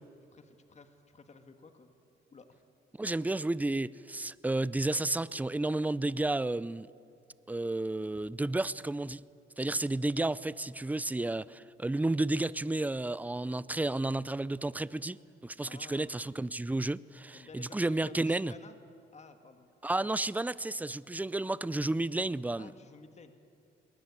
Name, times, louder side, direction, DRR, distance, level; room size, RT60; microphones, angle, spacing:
voice 1, 0.3-1.9 2.3-2.6 15.6-16.1 17.3-18.8 19.1-19.7 19.9-20.1 22.6-23.3, left 4 dB, 35° left, 1.8 m, -53 dB
voice 2, 3.0-6.9 7.5-9.2 9.6-15.2 15.4-18.5 19.8-22.7, right 2 dB, 10° right, 0.5 m, -32 dB
21.5 x 19.0 x 9.6 m
cardioid pair, 90°, 20 cm